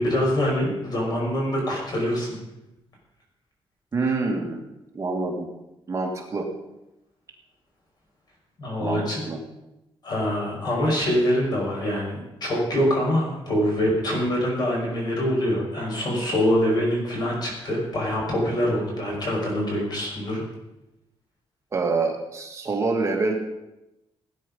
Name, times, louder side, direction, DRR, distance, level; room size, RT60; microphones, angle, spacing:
voice 1, 0.0-2.3 4.0-4.1 8.6-9.2 10.0-20.4, equal, 45° left, -1 dB, 5.6 m, -24 dB
voice 2, 3.9-4.7 4.9-5.5 5.9-6.5 8.8-9.4 21.7-23.3, right 3 dB, 30° right, 0 dB, 2.1 m, -26 dB
17.5 x 9.8 x 5.5 m, 0.93 s
wide cardioid pair, 150°, 10 cm